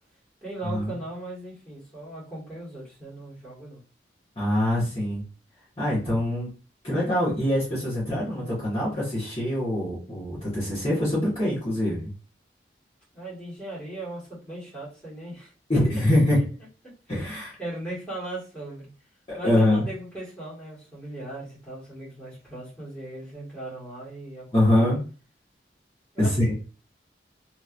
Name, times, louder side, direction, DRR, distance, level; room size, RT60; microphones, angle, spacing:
voice 1, 0.4-3.8 13.1-15.5 16.8-16.9 17.6-18.9 19.4-24.9 26.1-26.3, right 1 dB, 5° left, -9 dB, 1.8 m, -38 dB
voice 2, 4.3-5.2 5.8-6.5 6.8-12.1 15.7-16.4 17.1-17.6 19.3-19.8 24.5-25.0 26.2-26.5, left 1 dB, 35° left, -8 dB, 1.5 m, -24 dB
3.0 x 2.9 x 2.6 m, 0.34 s
head